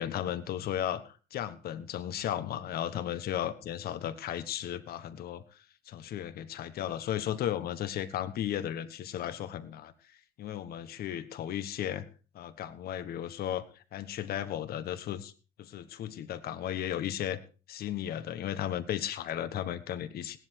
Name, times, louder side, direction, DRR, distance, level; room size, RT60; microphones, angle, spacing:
voice 1, 0.0-5.4 5.9-9.9 10.4-12.1 12.3-15.3 15.6-17.4 17.7-20.4, left 11 dB, 65° left, 11 dB, 1.3 m, -35 dB
16.0 x 10.5 x 4.6 m, 0.36 s
cardioid pair, 110°, 17 cm